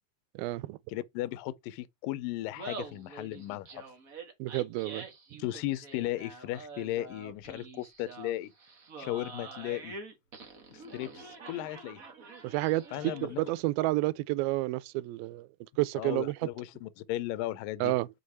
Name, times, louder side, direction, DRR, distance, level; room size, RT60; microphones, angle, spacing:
voice 1, 0.4-0.8 4.4-5.1 12.4-15.5 15.8-16.5 17.8-18.1, right 18 dB, 85° right, 2.4 m, -30 dB
voice 2, 0.9-3.8 5.4-8.5 9.0-10.0 10.7-12.0 12.9-13.4 16.0-17.9, left 15 dB, 80° left, 2.2 m, -36 dB
Laughter, 2.4-13.5, right 3 dB, 65° right, 0.8 m, -46 dB
6.4 x 5.2 x 4.1 m
omnidirectional pair, 4.2 m